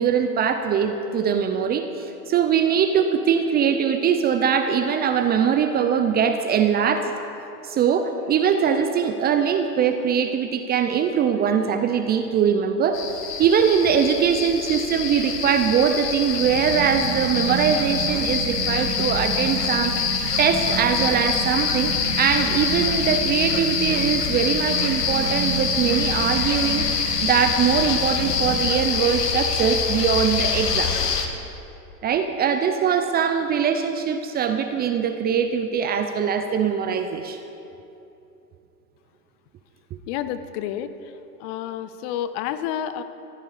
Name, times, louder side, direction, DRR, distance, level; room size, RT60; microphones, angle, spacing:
voice 1, 0.0-7.1 7.6-13.0 13.4-19.9 20.4-26.9 27.2-31.0 32.0-37.4, right 7 dB, 20° right, 7 dB, 0.6 m, -22 dB
sound 1, 12.9-31.3, left 6 dB, 80° left, 1.7 m, -25 dB
sound 2, 16.4-28.6, right 5 dB, 60° right, 4.0 m, -32 dB
voice 2, 40.1-41.1 41.4-43.0, left 10 dB, 45° left, 12 dB, 0.8 m, -30 dB
15.0 x 12.5 x 5.0 m, 2.9 s
hypercardioid pair, 110°, 48 cm